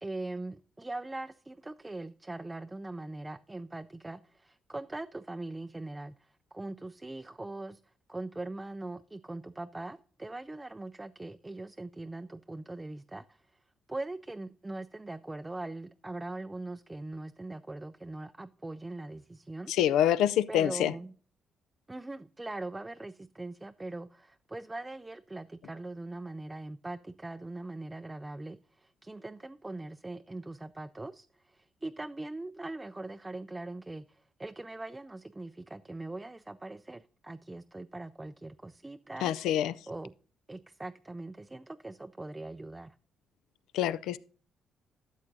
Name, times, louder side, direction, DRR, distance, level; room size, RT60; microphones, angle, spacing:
voice 1, 0.0-7.8 8.1-13.4 13.9-19.7 20.5-21.1 21.9-39.5 39.9-40.1 40.5-42.9, right 2 dB, 15° right, 0.4 m, -41 dB
voice 2, 19.7-20.9 39.2-39.7 43.7-44.2, left 11 dB, 90° left, 0.4 m, -26 dB
13.0 x 7.4 x 2.6 m
cardioid pair, 90°, 0 cm